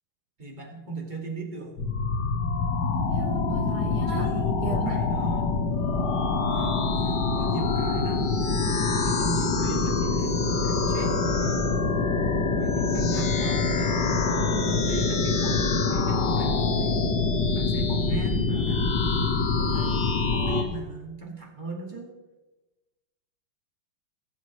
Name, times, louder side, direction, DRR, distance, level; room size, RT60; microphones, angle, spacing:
voice 1, 0.4-1.7 4.1-5.5 6.5-8.3 9.0-11.8 12.6-15.6 15.9-17.1 17.5-18.8 19.6-22.1, right 3 dB, 20° right, 0 dB, 1.9 m, -38 dB
sound 1, 1.8-20.6, left 4 dB, 55° left, 1.7 m, -25 dB
voice 2, 3.1-4.3 4.6-4.9, right 6 dB, 65° right, 5 dB, 1.0 m, -38 dB
19.5 x 8.2 x 3.2 m, 1.1 s
omnidirectional pair, 2.4 m